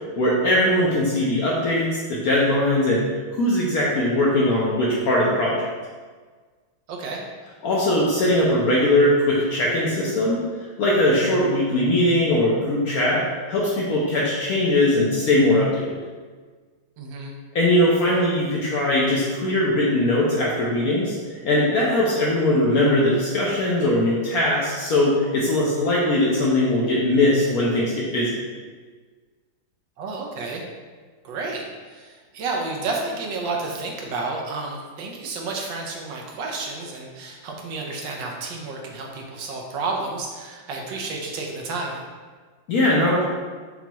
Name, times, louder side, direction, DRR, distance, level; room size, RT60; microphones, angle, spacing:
voice 1, 0.0-3.0 3.3-5.7 7.6-13.2 13.5-16.0 17.5-21.2 21.4-28.3 42.7-43.2, left 1 dB, 65° left, -5 dB, 0.9 m, -20 dB
voice 2, 6.9-7.2 17.0-17.3 30.0-30.6 31.2-41.9, right 3 dB, 80° right, 0 dB, 1.3 m, -31 dB
5.9 x 2.9 x 2.3 m, 1.5 s
omnidirectional pair, 2.1 m